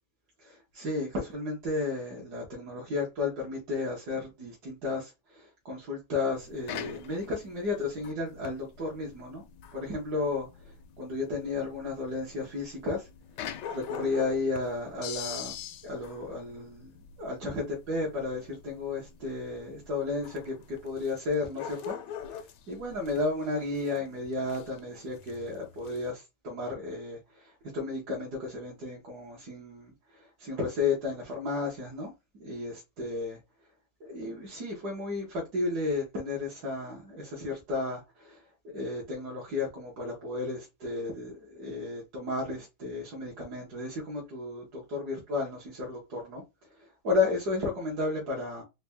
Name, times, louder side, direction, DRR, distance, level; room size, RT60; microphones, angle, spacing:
voice 1, 0.4-9.4 9.7-13.1 13.7-15.5 15.8-33.4 34.0-46.4 46.7-48.6, left 3 dB, 70° right, 1.5 m, -33 dB
sound 1, 6.3-26.1, left 9 dB, 85° left, 1.2 m, -44 dB
4.1 x 2.2 x 3.4 m
omnidirectional pair, 1.8 m